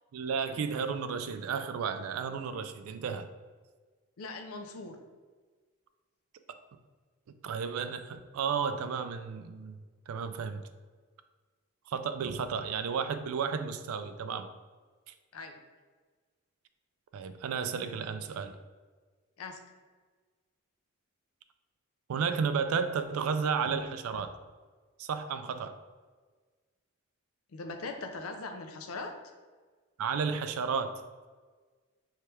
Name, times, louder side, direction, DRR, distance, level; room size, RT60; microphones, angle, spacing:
voice 1, 0.1-3.3 7.4-9.8 10.1-10.6 11.9-14.5 15.1-15.2 17.1-18.6 22.1-24.3 25.0-25.8 30.0-31.0, right 6 dB, 85° right, 9 dB, 0.3 m, -32 dB
voice 2, 4.2-5.0 15.3-15.6 19.4-19.6 27.5-29.1, left 3 dB, 90° left, 6 dB, 0.5 m, -40 dB
3.2 x 2.9 x 3.2 m, 1.4 s
head